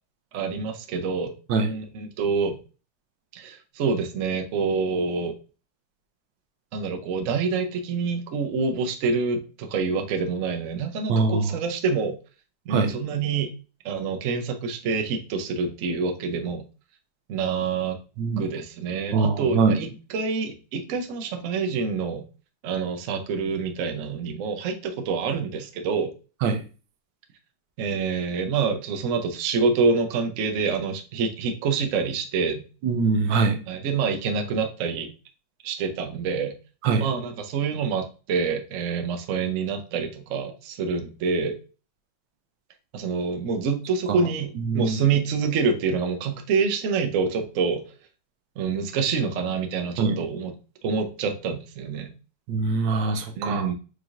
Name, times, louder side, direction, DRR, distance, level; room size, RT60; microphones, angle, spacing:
voice 1, 0.3-2.6 3.3-5.3 6.7-12.1 12.7-13.5 13.8-16.6 17.3-18.0 18.4-22.2 22.6-26.1 27.8-32.6 33.7-35.1 35.6-36.6 37.0-41.6 42.9-47.8 48.6-50.5 50.8-52.1 53.4-53.7, right 5 dB, 60° right, 5 dB, 0.8 m, -26 dB
voice 2, 11.1-11.6 12.7-12.9 18.2-18.5 19.1-19.8 26.4-26.6 32.8-33.6 36.8-37.1 44.1-44.2 44.6-45.0 50.0-50.1 52.5-53.7, right 4 dB, 80° right, 7 dB, 1.3 m, -23 dB
4.8 x 3.8 x 2.4 m, 0.34 s
omnidirectional pair, 2.0 m